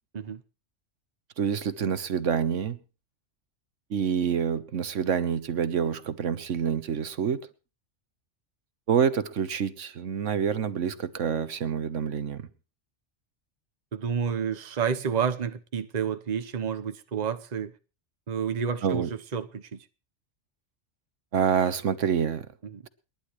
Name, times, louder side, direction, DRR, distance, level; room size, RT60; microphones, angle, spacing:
voice 1, 1.4-2.8 3.9-7.4 8.9-12.5 18.8-19.1 21.3-22.5, right 7 dB, 85° right, 1.4 m, -27 dB
voice 2, 13.9-17.7 18.3-19.8 22.6-22.8, right 7 dB, 40° right, 1.0 m, -30 dB
29.5 x 11.0 x 3.2 m
omnidirectional pair, 1.2 m